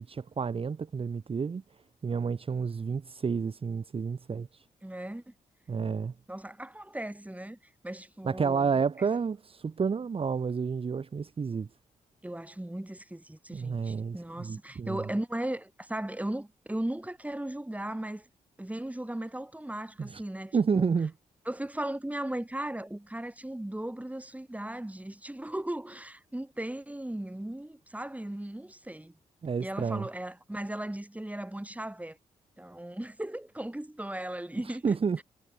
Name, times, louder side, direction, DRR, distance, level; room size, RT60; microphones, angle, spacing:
voice 1, 0.0-1.6 2.0-4.6 5.7-6.1 8.2-11.7 13.5-15.0 20.0-20.2 20.5-21.1 29.4-30.1 34.8-35.2, right 5 dB, 40° right, 0.9 m, -30 dB
voice 2, 4.8-5.3 6.3-9.1 12.2-18.3 18.6-21.0 21.5-29.2 29.6-32.2 32.6-35.2, right 1 dB, 10° right, 7.4 m, -37 dB
supercardioid pair, 60°, 15 cm